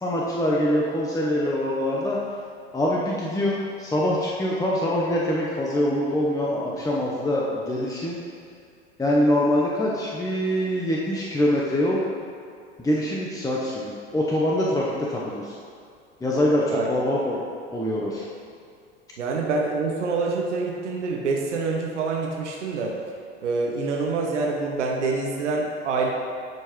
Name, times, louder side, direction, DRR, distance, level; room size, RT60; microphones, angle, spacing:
voice 1, 0.0-2.2 2.7-8.2 9.0-12.0 12.8-15.5 16.2-17.4 17.7-18.3, left 1 dB, 10° left, -4 dB, 0.8 m, -24 dB
voice 2, 19.2-22.9 23.4-26.1, right 3 dB, 90° right, -1 dB, 0.9 m, -26 dB
10.5 x 4.6 x 3.0 m, 2.2 s
hypercardioid pair, 85°, 34 cm